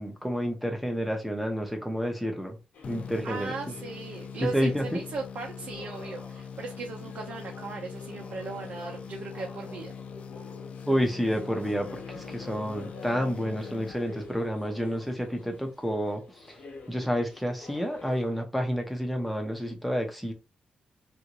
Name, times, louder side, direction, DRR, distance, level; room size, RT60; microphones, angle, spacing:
voice 1, 0.0-2.6 2.9-3.5 4.4-4.9 10.9-16.2 16.9-20.3, equal, ahead, 0.7 m, -29 dB
sound 1, 2.7-18.3, left 3 dB, 85° left, 1.0 m, -47 dB
sound 2, 2.8-14.6, left 7 dB, 50° left, 0.3 m, -43 dB
voice 2, 3.2-9.9, right 4 dB, 60° right, 0.7 m, -37 dB
3.4 x 2.6 x 2.9 m
wide cardioid pair, 175°, 3 cm